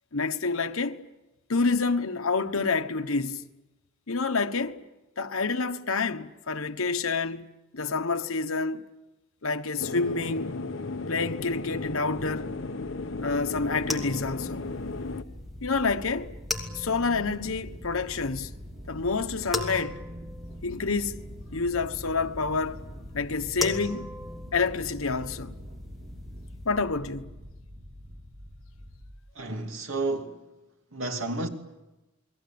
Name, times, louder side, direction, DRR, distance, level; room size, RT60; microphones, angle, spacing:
voice 1, 0.1-1.0 1.5-3.4 4.1-4.8 5.2-7.4 7.7-8.8 9.4-10.6 11.1-12.5 13.2-14.6 15.6-16.3 16.8-18.5 18.9-20.0 20.6-21.2 21.5-22.9 23.1-24.1 24.5-25.5 26.6-27.3, left 4 dB, 90° left, 1.2 m, -28 dB
sound 1, 9.8-15.2, left 3 dB, 65° left, 1.1 m, -35 dB
sound 2, 11.5-29.1, equal, 45° right, 4.3 m, -45 dB
sound 3, 13.3-26.8, left 2 dB, ahead, 2.7 m, -40 dB
voice 2, 29.3-30.3 30.9-31.5, right 2 dB, 70° right, 2.6 m, -31 dB
29.5 x 21.0 x 8.7 m
head